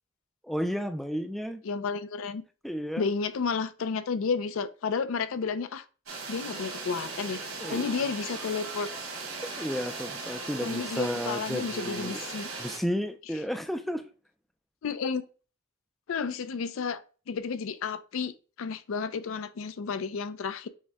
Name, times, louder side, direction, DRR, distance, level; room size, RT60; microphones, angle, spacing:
voice 1, 0.4-1.6 2.6-3.1 7.6-7.9 9.6-12.2 12.6-14.0, equal, ahead, 0.3 m, -32 dB
voice 2, 1.6-2.4 3.0-5.8 6.3-7.4 7.7-8.9 10.6-12.5 14.8-15.2 16.1-17.0 17.3-18.3 18.6-20.7, left 5 dB, 70° left, 0.4 m, -31 dB
sound 1, 6.1-12.8, right 3 dB, 70° right, 1.7 m, -38 dB
6.3 x 2.1 x 3.4 m
head